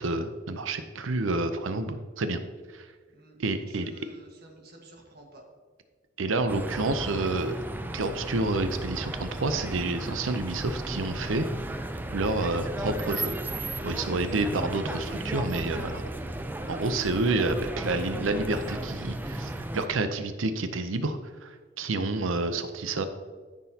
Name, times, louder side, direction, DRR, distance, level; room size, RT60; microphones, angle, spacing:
voice 1, 0.0-2.4 2.7-2.9 3.4-3.9 6.2-7.5 7.9-11.5 12.1-13.3 13.8-16.0 16.7-23.1, right 2 dB, 80° right, 9 dB, 0.6 m, -29 dB
voice 2, 3.1-3.4 3.7-5.4 16.1-16.2, right 1 dB, 55° right, 1 dB, 1.6 m, -52 dB
sound 1, 6.5-19.9, right 1 dB, 10° right, 0.4 m, -35 dB
13.5 x 6.1 x 2.8 m, 1.5 s
head